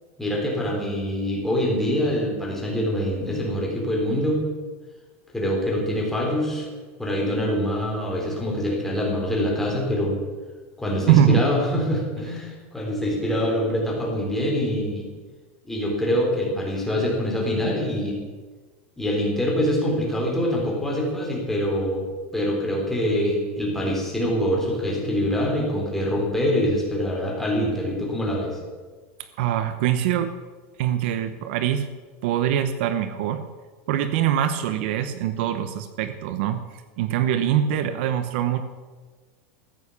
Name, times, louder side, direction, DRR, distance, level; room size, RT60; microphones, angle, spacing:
voice 1, 0.2-4.4 5.3-6.7 7.0-10.2 10.8-15.1 15.6-18.2 19.0-22.1 22.3-28.6, equal, 5° left, -3 dB, 3.6 m, -24 dB
voice 2, 11.1-11.4 29.4-30.3 30.8-31.9 32.2-33.4 33.9-36.6 37.0-38.6, right 10 dB, 60° right, 11 dB, 0.9 m, -23 dB
14.0 x 8.9 x 7.1 m, 1.4 s
supercardioid pair, 160°, 7 cm